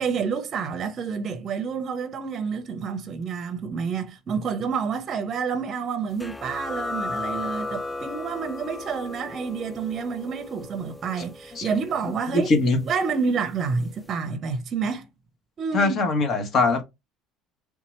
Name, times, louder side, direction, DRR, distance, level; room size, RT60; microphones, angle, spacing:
voice 1, 0.0-12.5 12.8-15.1 15.6-16.0, right 5 dB, 40° right, 0.6 m, -29 dB
sound 1, 6.2-13.4, left 2 dB, 10° left, 0.4 m, -35 dB
voice 2, 12.3-12.8 15.7-16.8, left 3 dB, 45° left, 1.2 m, -21 dB
3.6 x 2.8 x 3.1 m
cardioid pair, 115°, 0 cm